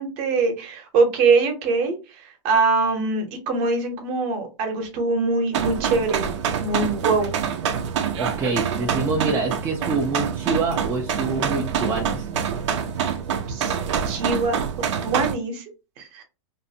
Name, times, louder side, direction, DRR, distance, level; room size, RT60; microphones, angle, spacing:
voice 1, 0.0-6.3 6.6-7.3 13.5-13.7 14.0-14.6 15.0-15.6 16.0-16.2, right 4 dB, 40° right, 0.9 m, -23 dB
sound 1, 5.5-15.3, right 7 dB, 70° right, 0.6 m, -26 dB
voice 2, 8.2-12.3, right 3 dB, 15° right, 0.4 m, -26 dB
2.6 x 2.1 x 2.7 m
supercardioid pair, 140°, 16 cm